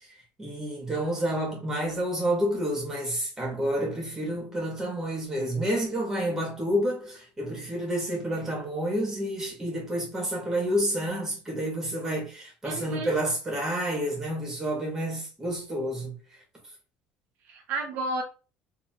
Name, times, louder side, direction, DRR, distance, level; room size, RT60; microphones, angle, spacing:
voice 1, 0.4-16.2, right 1 dB, 10° right, 1.9 m, -29 dB
voice 2, 12.6-13.2 17.4-18.2, right 3 dB, 55° right, 0.8 m, -32 dB
4.1 x 3.2 x 3.0 m
cardioid pair, 170°, 4 cm